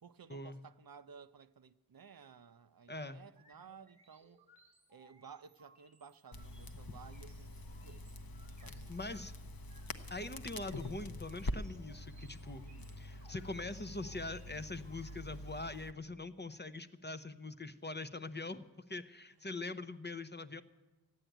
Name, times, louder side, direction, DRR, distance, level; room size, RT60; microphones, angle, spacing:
voice 1, 0.0-4.4 4.9-8.1 8.6-9.0 12.6-13.0 15.1-15.2, right 6 dB, 55° right, 0.6 m, -56 dB
voice 2, 2.9-3.2 8.9-9.3 10.1-12.6 13.0-20.6, left 2 dB, 25° left, 0.7 m, -43 dB
sound 1, 3.3-16.2, right 2 dB, 15° right, 1.4 m, -66 dB
Crackle, 6.3-15.9, left 1 dB, 55° left, 0.9 m, -45 dB
14.5 x 9.3 x 9.0 m
wide cardioid pair, 50°, 42 cm